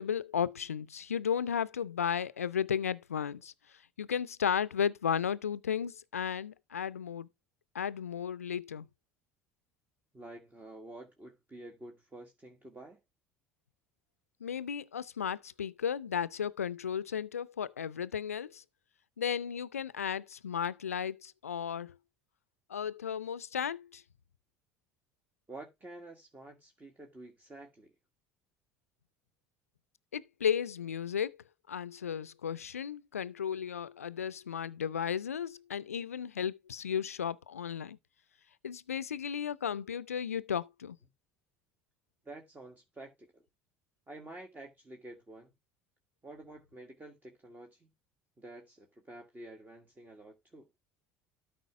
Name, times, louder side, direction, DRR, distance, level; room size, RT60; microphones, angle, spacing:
voice 1, 0.0-3.5 4.0-7.3 7.7-8.9 14.4-18.6 19.2-21.9 22.7-24.0 30.1-31.4 31.7-38.0 38.6-41.0, left 8 dB, 90° left, 0.4 m, -34 dB
voice 2, 10.1-13.0 25.5-27.9 42.2-43.4 44.1-45.5 46.2-47.9 48.4-50.7, right 2 dB, 25° right, 1.8 m, -49 dB
13.0 x 5.0 x 3.5 m
hypercardioid pair, 65°, 8 cm